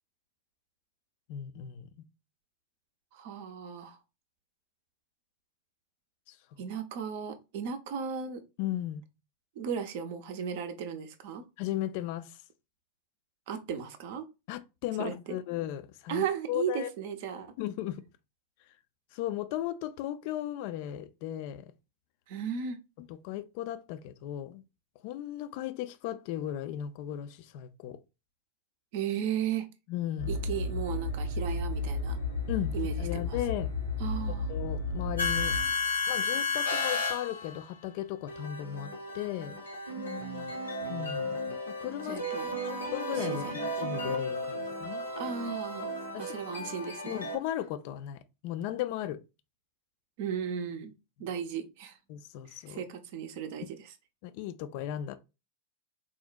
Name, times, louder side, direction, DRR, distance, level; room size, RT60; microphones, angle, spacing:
voice 1, 1.3-1.9 6.3-6.4 8.6-9.0 11.6-12.4 14.5-16.9 17.6-18.0 19.1-21.6 23.1-24.6 25.0-28.0 29.9-30.4 32.5-32.7 33.0-33.7 34.3-35.6 36.1-39.6 40.9-41.4 41.7-42.2 42.6-45.0 46.1-46.3 47.1-49.2 52.1-52.8 54.2-55.2, left 12 dB, 45° left, 0.3 m, -36 dB
voice 2, 3.1-4.0 6.6-8.4 9.6-11.5 13.5-14.3 15.0-15.4 16.1-17.5 22.3-22.8 28.9-29.7 30.3-32.2 32.7-33.4 34.0-34.5 39.9-40.5 42.0-42.5 43.1-43.7 45.2-45.9 46.2-47.2 50.2-50.9 51.2-52.0 52.7-53.9, right 8 dB, 50° right, 0.5 m, -36 dB
sound 1, 30.2-37.6 38.3-47.4, left 2 dB, 75° left, 0.8 m, -33 dB
3.7 x 2.1 x 2.4 m
figure-of-eight pair, 90°, 0 cm